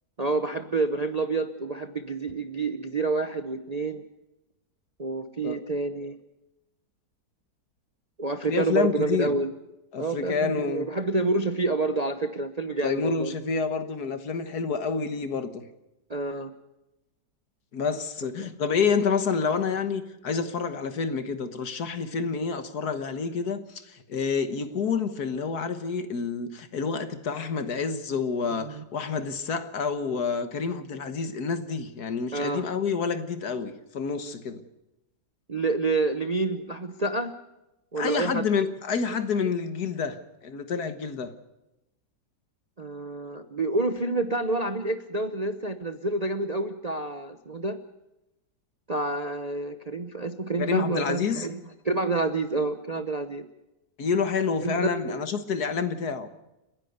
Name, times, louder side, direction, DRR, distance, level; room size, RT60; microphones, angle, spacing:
voice 1, 0.2-4.0 5.0-6.2 8.2-9.5 10.0-13.3 16.1-16.5 18.4-18.5 28.6-28.8 32.3-32.7 35.5-37.3 37.9-38.5 42.8-47.8 48.9-53.5 54.6-55.2, right 3 dB, 35° right, 9 dB, 0.7 m, -28 dB
voice 2, 8.5-9.4 9.9-10.9 12.8-15.6 17.7-34.6 38.0-41.3 50.6-51.5 54.0-56.3, left 5 dB, 65° left, 10 dB, 1.9 m, -28 dB
30.0 x 11.0 x 8.0 m, 0.95 s
omnidirectional pair, 1.8 m